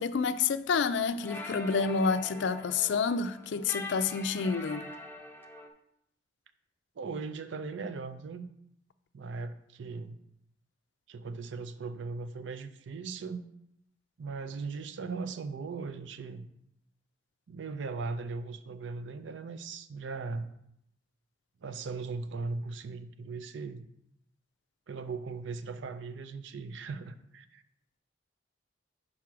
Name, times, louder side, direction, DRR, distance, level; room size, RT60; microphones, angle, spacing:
voice 1, 0.0-4.9, left 5 dB, 75° left, 0.4 m, -29 dB
sound 1, 0.7-5.7, left 2 dB, 10° left, 0.4 m, -44 dB
voice 2, 7.0-8.5 9.1-10.2 11.1-13.4 14.2-16.5 17.5-20.6 21.6-23.9 24.9-27.6, right 4 dB, 80° right, 0.4 m, -38 dB
6.0 x 3.7 x 4.8 m
head